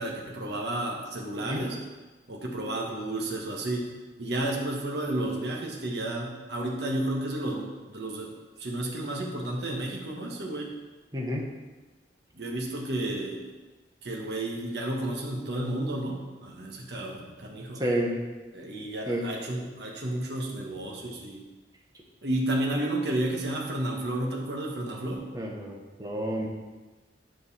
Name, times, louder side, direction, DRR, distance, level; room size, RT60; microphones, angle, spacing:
voice 1, 0.0-1.8 2.3-3.9 4.2-8.3 8.6-10.7 12.3-13.4 14.0-17.8 18.5-21.4 22.2-25.2, right 1 dB, 70° right, -1 dB, 1.5 m, -32 dB
voice 2, 11.1-11.5 17.8-18.3 19.1-19.3 25.3-26.5, equal, 20° right, -1 dB, 1.2 m, -30 dB
9.5 x 5.2 x 4.3 m, 1.2 s
head